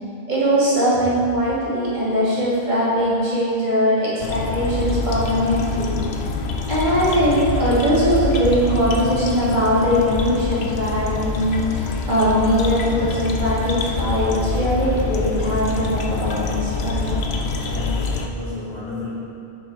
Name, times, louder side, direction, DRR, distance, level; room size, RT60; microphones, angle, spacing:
voice 1, 0.3-6.0 6.7-17.1, equal, 45° right, -10 dB, 2.4 m, -20 dB
sound 1, 4.2-18.3, left 4 dB, 75° left, 1.0 m, -25 dB
voice 2, 17.6-19.1, left 2 dB, 45° left, -9 dB, 2.1 m, -32 dB
7.0 x 6.6 x 4.8 m, 2.5 s
omnidirectional pair, 1.1 m